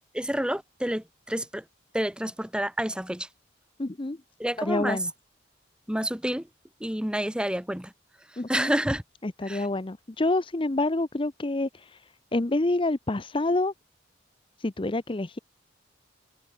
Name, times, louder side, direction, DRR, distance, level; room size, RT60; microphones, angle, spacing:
voice 1, 0.1-1.6 1.9-3.3 4.4-5.0 5.9-6.4 6.8-7.9 8.5-9.0 9.5-9.7, equal, 5° right, 1.4 m, -29 dB
voice 2, 3.8-4.2 4.6-5.1 8.4-8.7 9.2-12.0 12.3-13.7 14.6-15.4, left 2 dB, 25° left, 0.7 m, -27 dB
open air
head